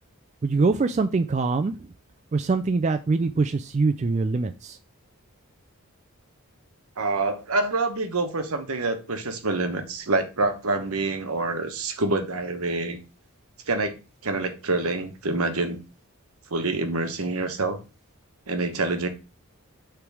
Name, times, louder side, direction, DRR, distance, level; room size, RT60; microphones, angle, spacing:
voice 1, 0.4-1.7 2.3-4.8, right 3 dB, 30° right, 8 dB, 0.3 m, -23 dB
voice 2, 7.0-13.0 13.7-14.0 14.2-15.8 16.5-17.8 18.5-19.1, right 3 dB, 80° right, 7 dB, 1.1 m, -26 dB
6.9 x 3.4 x 4.7 m, 0.30 s
head